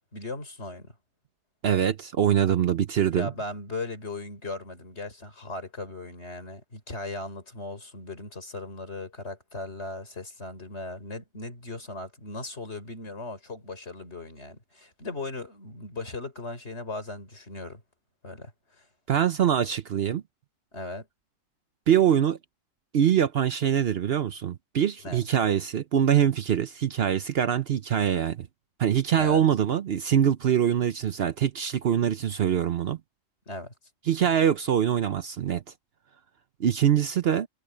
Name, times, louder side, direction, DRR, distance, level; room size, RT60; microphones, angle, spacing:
voice 1, 0.1-0.9 3.1-17.8 18.2-18.9 20.7-21.1 25.0-25.2 29.2-29.4 33.5-33.7, left 2 dB, 60° left, 4.4 m, -38 dB
voice 2, 1.6-3.3 19.1-20.2 21.9-22.4 22.9-28.5 28.8-33.0 34.1-35.6 36.6-37.5, right 9 dB, 60° right, 0.8 m, -24 dB
omnidirectional pair, 1.3 m